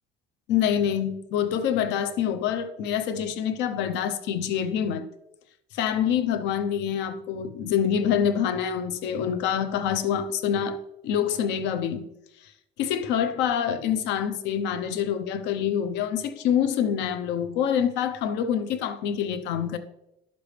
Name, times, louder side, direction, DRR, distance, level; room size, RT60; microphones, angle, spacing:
voice 1, 0.5-5.0 5.7-12.1 12.8-19.8, left 8 dB, 70° left, 0.9 m, -26 dB
10.5 x 6.9 x 3.3 m
cardioid pair, 145°, 19 cm